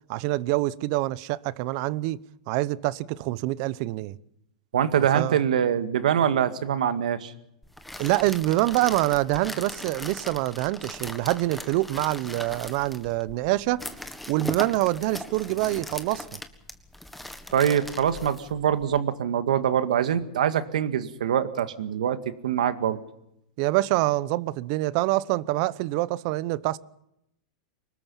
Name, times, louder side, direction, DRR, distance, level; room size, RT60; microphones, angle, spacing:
voice 1, 0.1-2.2 2.5-4.2 5.1-5.4 8.0-13.9 14.3-16.4 23.6-26.8, right 18 dB, 50° right, 0.8 m, -25 dB
voice 2, 4.7-7.3 17.5-22.2 22.4-23.0, right 9 dB, 85° right, 2.0 m, -24 dB
sound 1, 7.6-19.0, left 1 dB, ahead, 1.6 m, -39 dB
24.5 x 20.5 x 5.7 m
hypercardioid pair, 135°, 4 cm